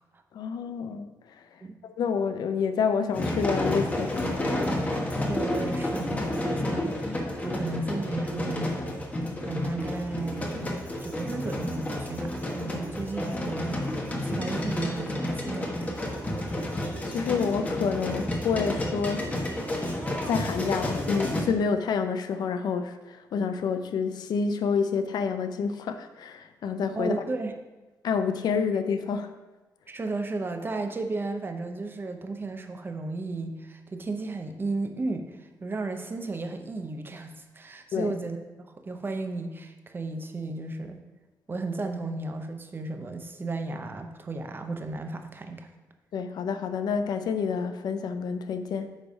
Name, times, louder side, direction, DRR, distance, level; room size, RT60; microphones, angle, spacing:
voice 1, 0.3-1.1 1.8-4.8 17.0-19.4 20.3-27.1 28.0-29.3 37.9-38.1 46.1-49.0, left 6 dB, 80° left, 0.5 m, -28 dB
sound 1, 3.1-21.4, left 1 dB, 20° left, 1.2 m, -30 dB
voice 2, 5.3-8.8 9.4-10.7 11.0-13.8 14.2-15.7 26.9-27.5 29.9-38.4 38.8-41.0 41.5-45.7, right 3 dB, 30° right, 0.8 m, -34 dB
9.1 x 3.3 x 5.4 m
cardioid pair, 105°, 7 cm